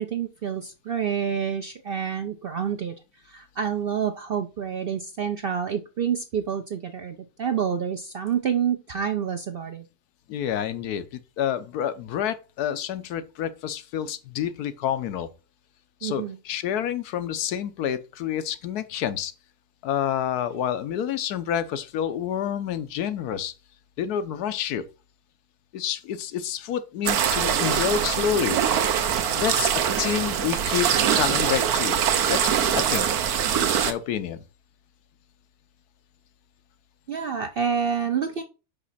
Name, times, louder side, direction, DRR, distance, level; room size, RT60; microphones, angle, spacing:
voice 1, 0.0-3.0 3.3-9.8 16.0-16.4 37.1-38.4, right 7 dB, 60° right, 0.6 m, -28 dB
voice 2, 10.3-11.0 11.4-15.3 16.0-19.3 19.8-23.5 24.0-24.8 25.7-28.6 29.3-29.7 30.0-30.9 31.2-32.0 32.3-33.1 33.8-34.4, left 9 dB, 85° left, 1.2 m, -28 dB
sound 1, 27.1-33.9, right 8 dB, 80° right, 1.3 m, -23 dB
5.9 x 5.3 x 4.1 m
omnidirectional pair, 1.6 m